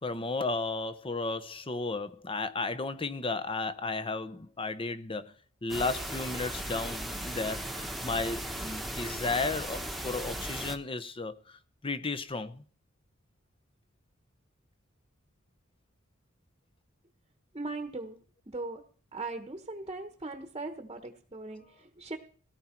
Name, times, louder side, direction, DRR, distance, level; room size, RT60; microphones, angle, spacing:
voice 1, 0.0-5.3 5.6-12.6, left 3 dB, 25° left, 0.8 m, -34 dB
sound 1, 5.7-10.8, right 1 dB, ahead, 1.2 m, -37 dB
voice 2, 17.5-18.2 18.5-18.8 19.1-22.2, right 2 dB, 25° right, 1.1 m, -39 dB
18.0 x 10.5 x 4.5 m
head